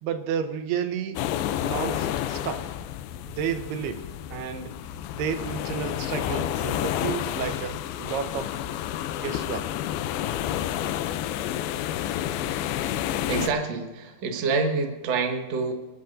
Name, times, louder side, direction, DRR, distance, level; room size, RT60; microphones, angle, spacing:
voice 1, 0.0-1.3 1.6-2.7 3.4-4.7 5.1-8.5 9.2-9.7, right 7 dB, 85° right, 7 dB, 2.9 m, -31 dB
sound 1, 1.2-13.5, left 11 dB, 80° left, 2.4 m, -30 dB
voice 2, 13.3-15.7, right 4 dB, 55° right, 3 dB, 2.2 m, -27 dB
28.5 x 12.5 x 2.6 m, 1.2 s
omnidirectional pair, 4.6 m